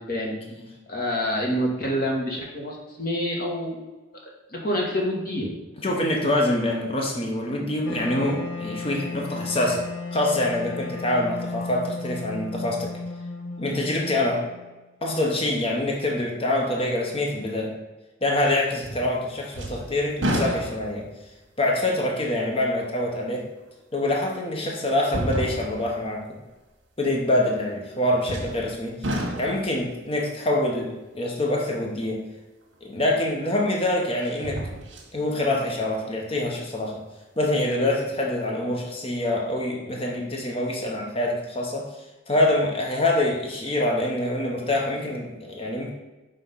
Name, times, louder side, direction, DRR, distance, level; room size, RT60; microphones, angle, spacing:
voice 1, 0.9-3.8 4.5-5.5, equal, 45° left, -2 dB, 1.5 m, -27 dB
voice 2, 5.8-9.9 10.1-12.9 13.6-14.5 15.0-17.7 18.2-21.1 21.6-23.5 23.9-26.4 27.0-32.2 32.8-34.6 35.1-37.0 37.4-41.9 42.3-46.0, left 1 dB, 30° left, -1 dB, 0.9 m, -25 dB
Wind instrument woodwind instrument, 7.8-14.8, left 3 dB, 90° left, 0.9 m, -35 dB
sound 1, 18.8-19.2 19.5-21.1 21.7-21.8 23.7-23.8 25.0-25.9 28.3-28.7 29.0-29.7 32.7-32.8 34.2-35.1 35.6-35.7, right 1 dB, 75° right, 1.3 m, -30 dB
5.6 x 3.7 x 5.5 m, 1.1 s
head